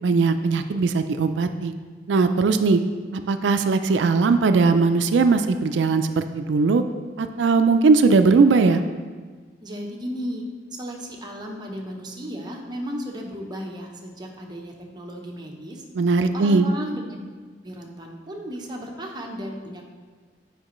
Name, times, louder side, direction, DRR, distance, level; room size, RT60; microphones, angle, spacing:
voice 1, 0.0-1.7 2.1-2.8 3.3-6.8 7.2-8.8 16.0-16.7, right 4 dB, 85° right, 9 dB, 0.4 m, -19 dB
voice 2, 9.6-15.9 16.3-17.2 17.6-19.8, equal, 25° right, 0 dB, 0.8 m, -34 dB
8.7 x 5.1 x 3.1 m, 1.5 s
head